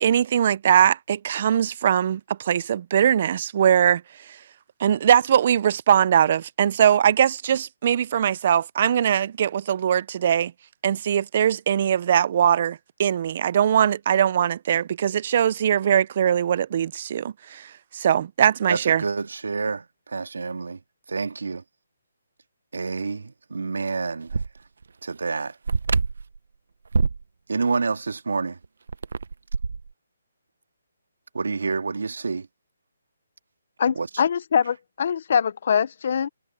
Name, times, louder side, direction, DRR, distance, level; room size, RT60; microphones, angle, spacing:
voice 1, 0.0-4.0 4.3-4.4 4.8-10.5 10.8-19.0, right 9 dB, 35° right, 0.4 m, -21 dB
voice 2, 18.7-20.8 21.1-21.6 22.7-24.4 25.0-25.6 27.5-28.6 31.3-32.5 33.9-34.1, right 4 dB, 85° right, 2.5 m, -28 dB
sound 1, 24.3-24.5 24.8-24.9 25.7-26.4 26.9-27.2 28.6-29.9, right 4 dB, 70° right, 0.9 m, -24 dB
voice 3, 33.8-36.3, left 7 dB, 45° left, 0.6 m, -23 dB
hypercardioid pair, 170°, 0 cm